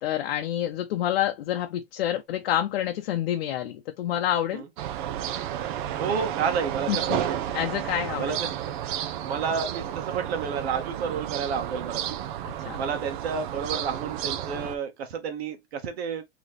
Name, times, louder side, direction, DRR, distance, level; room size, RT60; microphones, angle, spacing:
voice 1, 0.0-4.6 6.9-7.2 7.5-8.4 12.4-12.8, left 11 dB, 65° left, 0.7 m, -28 dB
sound 1, 4.8-14.8, right 11 dB, 50° right, 0.7 m, -32 dB
voice 2, 6.0-7.4 8.2-8.7 9.2-12.2 12.7-16.2, right 6 dB, 70° right, 1.3 m, -30 dB
3.9 x 3.1 x 3.2 m
supercardioid pair, 155°, 32 cm